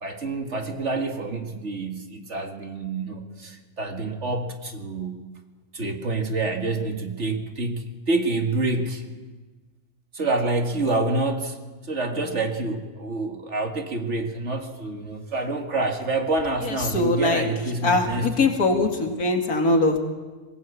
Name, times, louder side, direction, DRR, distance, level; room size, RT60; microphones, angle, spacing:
voice 1, 0.0-5.2 5.7-9.0 10.1-11.6 11.9-18.5, right 2 dB, 50° right, 4 dB, 2.1 m, -27 dB
voice 2, 16.6-17.5 17.8-20.0, left 2 dB, 70° left, 4 dB, 2.6 m, -22 dB
21.0 x 17.5 x 8.3 m, 1.3 s
omnidirectional pair, 1.6 m